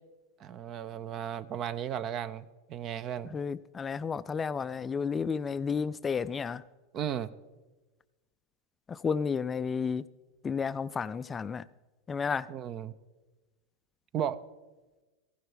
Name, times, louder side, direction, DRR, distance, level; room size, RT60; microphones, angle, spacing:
voice 1, 0.4-3.3 6.9-7.3 12.5-12.9 14.1-14.4, right 9 dB, 40° right, 0.6 m, -35 dB
voice 2, 3.3-6.6 8.9-10.0 10.4-11.7 12.1-12.5, left 6 dB, 20° left, 0.3 m, -32 dB
15.0 x 11.5 x 5.0 m
hypercardioid pair, 110°, 0 cm